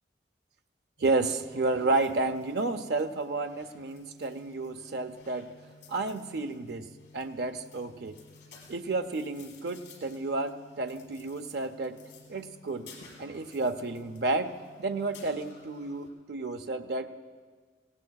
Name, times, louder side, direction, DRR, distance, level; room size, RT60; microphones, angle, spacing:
sound 1, 1.0-16.1, left 4 dB, 85° left, 3.6 m, -54 dB
voice 1, 1.0-5.5 5.9-6.9 7.1-8.2 8.7-12.0 12.3-12.9 13.2-14.5 14.8-17.1, right 3 dB, 65° right, 8 dB, 0.5 m, -31 dB
18.5 x 17.0 x 2.3 m, 1.5 s
head